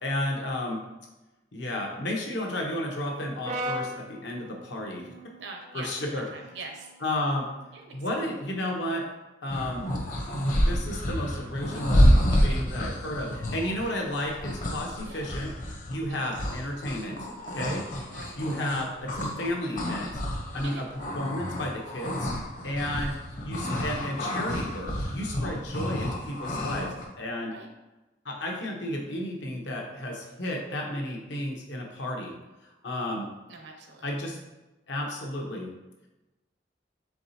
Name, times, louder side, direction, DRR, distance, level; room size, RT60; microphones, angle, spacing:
voice 1, 0.0-0.8 1.5-5.1 5.7-6.3 7.0-7.5 7.9-9.1 9.4-9.9 10.7-12.1 12.4-15.5 15.9-17.2 17.5-17.8 18.4-20.1 20.5-20.9 21.1-22.3 22.6-23.2 23.4-27.5 28.2-32.3 32.6-33.3 34.0-34.4 34.9-35.7, left 1 dB, 80° left, 0 dB, 0.9 m, -32 dB
Brass instrument, 3.4-7.7, equal, 40° right, 0.4 m, -39 dB
voice 2, 5.4-6.9 7.7-8.2 12.1-12.4 15.0-15.3 16.1-16.4 18.1-18.4 20.7-20.9 22.8-23.0 27.5-27.7 33.5-34.1, right 3 dB, 75° right, 2 dB, 0.8 m, -44 dB
sound 1, 9.5-19.5 19.8-27.1, equal, 45° left, 0.7 m, -28 dB
4.6 x 3.9 x 2.7 m, 1.0 s
head